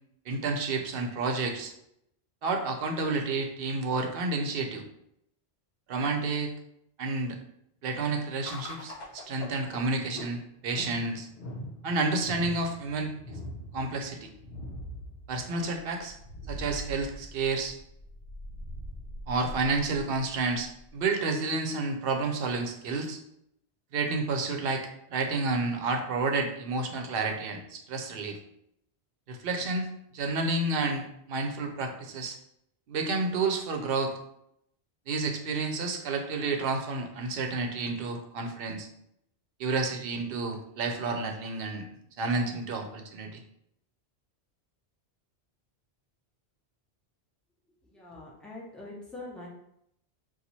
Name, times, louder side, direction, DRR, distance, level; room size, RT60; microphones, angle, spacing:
voice 1, 0.3-1.7 2.4-4.8 5.9-6.5 7.0-7.4 7.8-11.3 11.8-13.1 13.7-14.3 15.3-16.2 16.5-17.7 19.3-23.2 23.9-28.4 29.3-32.4 32.9-34.1 35.1-38.9 39.6-41.9 42.2-43.4, right 3 dB, 65° right, 4 dB, 0.7 m, -30 dB
Spinning down, 8.4-21.1, left 1 dB, 60° left, 0.7 m, -43 dB
voice 2, 47.9-49.5, left 2 dB, ahead, -5 dB, 0.7 m, -43 dB
2.9 x 2.3 x 4.0 m, 0.76 s
omnidirectional pair, 1.1 m